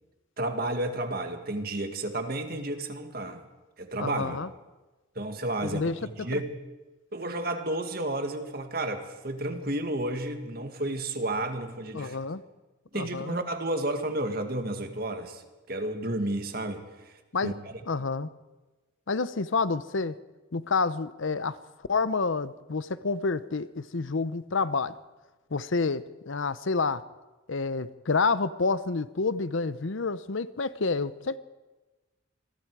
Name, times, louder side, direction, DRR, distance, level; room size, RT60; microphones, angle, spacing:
voice 1, 0.4-3.4 3.8-4.4 5.2-6.6 7.1-12.2 12.9-17.1 17.4-17.5, right 1 dB, 45° right, 6 dB, 2.0 m, -32 dB
voice 2, 4.0-4.5 5.6-6.0 6.3-6.4 11.9-12.4 12.9-13.4 17.3-17.5 17.9-18.3 19.1-20.1 20.5-21.6 21.9-24.9 25.5-27.0 27.5-31.4, left 4 dB, 70° left, 15 dB, 0.7 m, -28 dB
28.0 x 22.0 x 4.8 m, 1.2 s
head